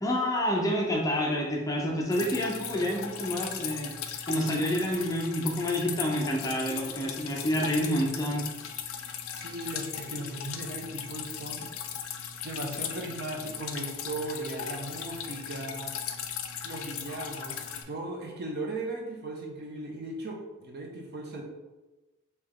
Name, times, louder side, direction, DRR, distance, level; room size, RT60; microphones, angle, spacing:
voice 1, 0.0-3.9 4.3-8.5, equal, 15° left, -1 dB, 0.5 m, -28 dB
Drip, 2.1-17.8, left 8 dB, 70° left, 0.4 m, -38 dB
voice 2, 9.3-11.6 12.4-15.9 16.6-17.6 17.9-21.4, right 2 dB, 50° right, 0 dB, 0.7 m, -37 dB
3.3 x 2.9 x 3.6 m, 1.1 s
head